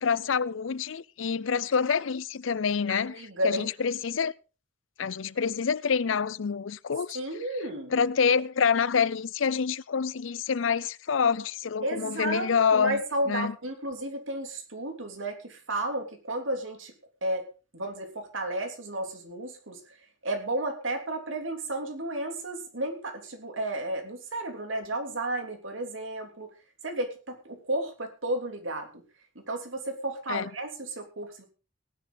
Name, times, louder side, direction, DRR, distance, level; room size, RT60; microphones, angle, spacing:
voice 1, 0.0-3.1 3.4-4.3 5.0-7.2 7.9-13.0 13.3-13.5 30.3-30.5, left 6 dB, 80° left, 0.5 m, -27 dB
voice 2, 2.9-3.7 7.1-7.9 11.8-16.9 17.2-17.5 17.7-20.0 20.2-26.5 26.8-29.0 29.3-31.4, right 1 dB, 80° right, 3.1 m, -33 dB
18.0 x 10.5 x 4.0 m
head